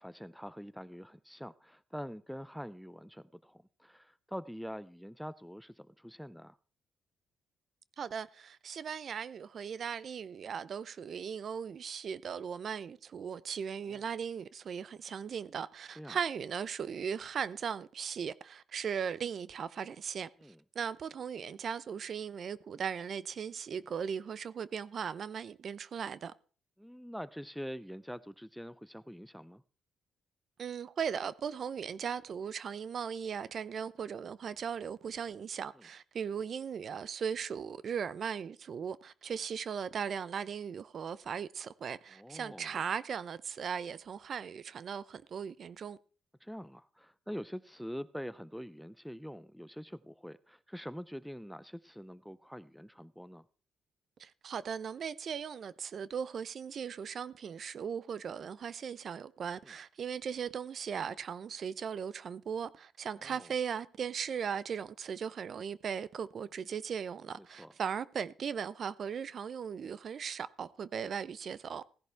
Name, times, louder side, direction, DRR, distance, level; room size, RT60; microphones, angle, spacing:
voice 1, 0.0-6.6 13.8-14.0 16.0-16.2 20.4-20.6 26.8-29.6 35.7-35.9 42.1-42.8 46.4-53.4 59.6-59.7 63.2-63.5 67.4-67.7, equal, ahead, 0.5 m, -45 dB
voice 2, 8.0-20.3 20.7-26.3 30.6-46.0 54.2-71.8, right 7 dB, 55° right, 0.6 m, -38 dB
16.5 x 10.5 x 3.4 m
cardioid pair, 90°, 0 cm